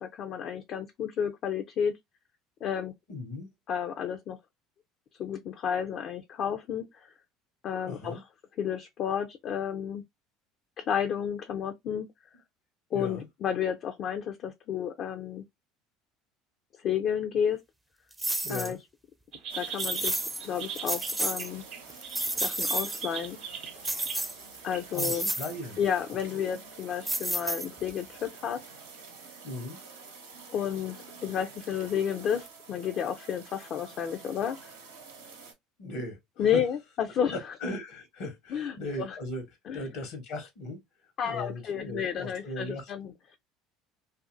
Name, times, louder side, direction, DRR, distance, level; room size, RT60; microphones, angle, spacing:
voice 1, 0.0-1.9 2.6-2.9 3.7-4.4 5.2-7.1 7.6-8.2 8.6-10.0 10.8-12.1 12.9-15.4 16.8-17.6 18.5-18.8 19.5-21.6 22.4-23.4 24.6-25.3 25.8-28.6 30.5-31.0 31.2-34.6 36.4-37.4 38.5-39.2 39.7-39.9 41.2-43.4, left 8 dB, 50° left, 0.4 m, -31 dB
voice 2, 3.1-3.5 7.9-8.2 12.9-13.3 18.4-18.8 24.9-25.8 29.4-29.8 35.8-36.6 37.3-39.4 39.7-40.8 41.2-42.9, left 1 dB, 75° left, 0.9 m, -37 dB
sound 1, 18.2-18.7 19.8-20.4 20.8-21.5 21.9-23.0 23.8-24.6 24.9-25.5 27.1-27.9, right 1 dB, 10° right, 0.5 m, -31 dB
sound 2, 19.3-24.2 24.7-25.0 25.5-25.6, right 7 dB, 55° right, 0.6 m, -40 dB
sound 3, 19.5-35.5, right 4 dB, 85° right, 0.8 m, -48 dB
2.6 x 2.4 x 2.5 m
hypercardioid pair, 75°, 0 cm